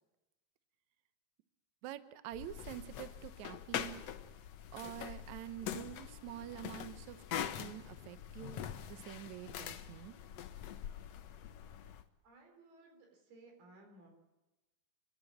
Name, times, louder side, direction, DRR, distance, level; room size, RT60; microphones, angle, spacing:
voice 1, 1.8-4.0 4.7-10.2, right 13 dB, 70° right, 13 dB, 1.8 m, -47 dB
sound 1, 2.3-12.0, left 10 dB, 85° left, 1.4 m, -44 dB
voice 2, 12.2-14.1, right 2 dB, 90° right, 2 dB, 6.1 m, -59 dB
29.0 x 11.5 x 9.0 m, 1.1 s
omnidirectional pair, 4.3 m